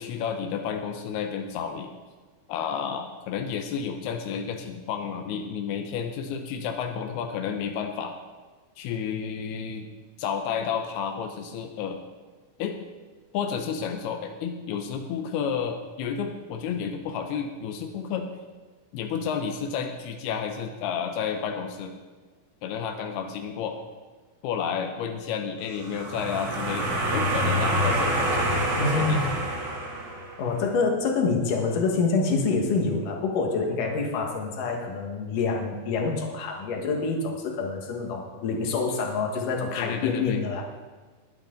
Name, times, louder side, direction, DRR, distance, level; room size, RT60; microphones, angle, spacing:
voice 1, 0.0-1.9 2.5-8.2 8.8-9.9 10.2-12.0 12.6-12.8 13.3-18.3 18.9-22.0 22.6-23.8 24.4-28.3 28.7-29.5 39.8-40.4, left 7 dB, 85° left, 5 dB, 2.9 m, -31 dB
sound 1, 25.7-30.5, right 1 dB, 45° right, 3.4 m, -26 dB
voice 2, 28.8-29.3 30.4-40.6, left 4 dB, 60° left, 1 dB, 3.1 m, -26 dB
21.0 x 9.1 x 3.9 m, 1.4 s
omnidirectional pair, 4.4 m